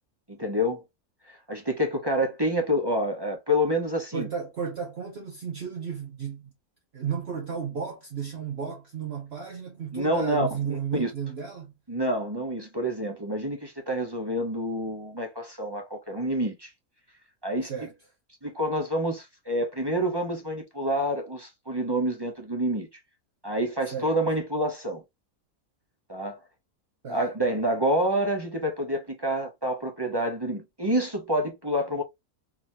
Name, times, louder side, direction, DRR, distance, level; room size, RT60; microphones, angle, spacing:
voice 1, 0.3-0.8 1.3-4.3 9.9-11.1 11.9-16.7 17.4-17.7 18.4-22.9 23.4-25.0 26.1-26.4 27.1-32.0, equal, 20° right, 0.7 m, -28 dB
voice 2, 4.1-6.5 6.9-11.7 17.7-17.9 23.9-24.1 27.0-27.2, right 7 dB, 50° right, 1.0 m, -33 dB
3.9 x 3.0 x 2.7 m
omnidirectional pair, 1.5 m